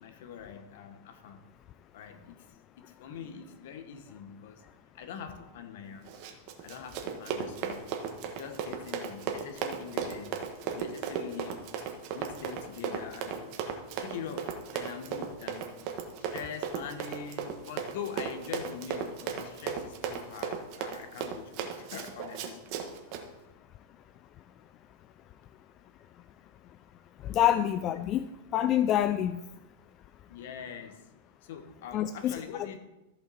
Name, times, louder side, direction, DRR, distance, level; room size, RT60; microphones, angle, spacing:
voice 1, 0.0-1.4 1.9-2.4 2.7-4.6 4.9-6.1 6.6-7.9 8.2-10.4 10.7-11.7 12.1-13.5 13.9-15.8 16.2-22.9 30.3-31.1 31.4-32.8, left 7 dB, 65° left, 8 dB, 1.2 m, -43 dB
Run, 6.1-23.2, right 7 dB, 45° right, 1.3 m, -36 dB
voice 2, 27.2-28.3 28.5-29.4 31.9-32.4, left 11 dB, 35° left, 10 dB, 0.3 m, -26 dB
13.5 x 5.8 x 4.2 m, 0.98 s
supercardioid pair, 140°, 0 cm